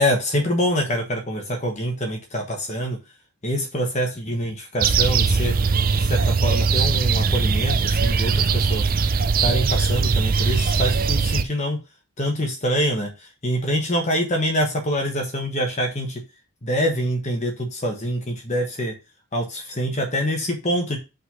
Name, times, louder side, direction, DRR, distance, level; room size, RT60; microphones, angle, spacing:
voice 1, 0.0-3.0 3.4-5.5 5.9-8.8 9.4-11.8 12.2-16.2 16.6-18.9 19.3-21.0, equal, 30° left, 2 dB, 1.2 m, -25 dB
sound 1, 4.8-11.4, right 5 dB, 40° right, 0.5 m, -20 dB
5.6 x 3.8 x 5.6 m, 0.28 s
head